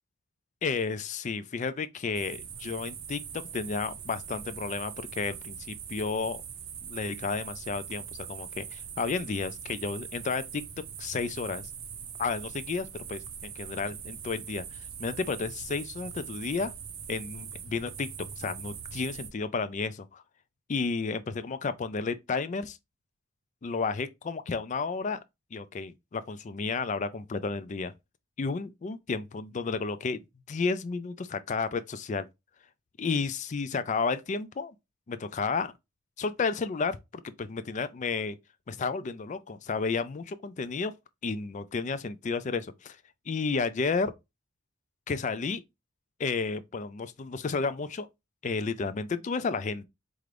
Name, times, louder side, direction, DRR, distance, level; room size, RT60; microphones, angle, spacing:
voice 1, 0.6-6.4 6.8-10.6 11.0-11.7 12.2-16.7 17.1-18.1 18.4-20.2 20.7-22.8 23.6-25.2 25.5-27.9 28.4-32.3 33.0-34.7 35.1-35.7 36.2-37.0 37.4-38.4 38.7-40.9 41.2-43.0 43.3-44.1 45.1-45.6 46.2-48.1 48.4-49.9, left 4 dB, 35° left, 0.4 m, -32 dB
sound 1, 2.1-19.3, right 7 dB, 75° right, 0.7 m, -42 dB
4.4 x 2.5 x 3.3 m
head